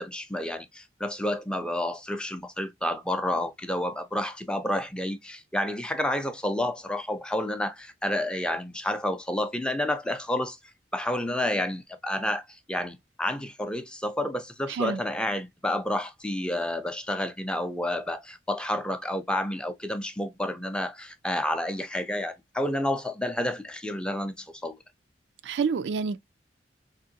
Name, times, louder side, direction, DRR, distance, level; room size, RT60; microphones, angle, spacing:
voice 1, 0.0-10.6 10.9-12.4 12.7-24.8, left 1 dB, 5° left, 0.4 m, -30 dB
voice 2, 25.4-26.2, right 5 dB, 80° right, 0.3 m, -28 dB
3.6 x 2.6 x 2.7 m
head